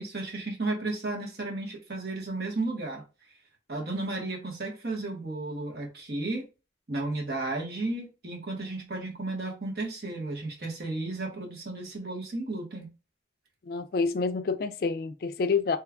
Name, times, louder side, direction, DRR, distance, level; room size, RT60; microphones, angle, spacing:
voice 1, 0.0-3.0 3.7-6.5 6.9-12.9, right 2 dB, 60° right, 1.1 m, -33 dB
voice 2, 13.6-15.8, left 4 dB, 55° left, 0.3 m, -28 dB
3.1 x 2.3 x 3.5 m
head